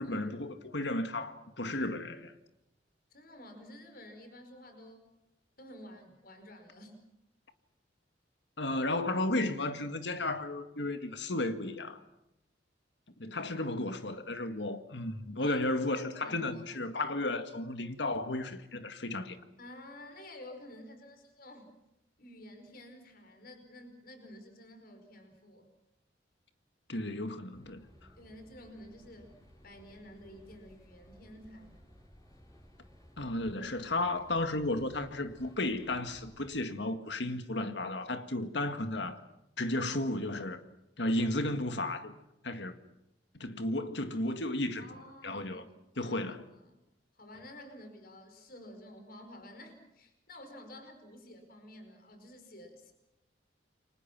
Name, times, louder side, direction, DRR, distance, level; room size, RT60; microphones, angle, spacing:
voice 1, 0.0-2.3 8.6-12.0 13.2-19.4 26.9-27.9 33.2-39.2 39.6-40.6 41.0-42.2 42.4-42.7 43.3-44.8 45.2-45.6 46.0-46.4, left 2 dB, 70° left, 1.9 m, -33 dB
voice 2, 3.1-5.0 5.6-7.0 15.4-15.6 15.9-16.6 19.6-21.7 22.2-25.7 28.2-29.3 29.6-31.8 38.6-38.8 44.7-46.8 47.1-52.9, left 1 dB, 55° left, 5.1 m, -51 dB
sound 1, 27.5-36.5, equal, 20° left, 7.4 m, -58 dB
29.0 x 24.5 x 6.0 m
head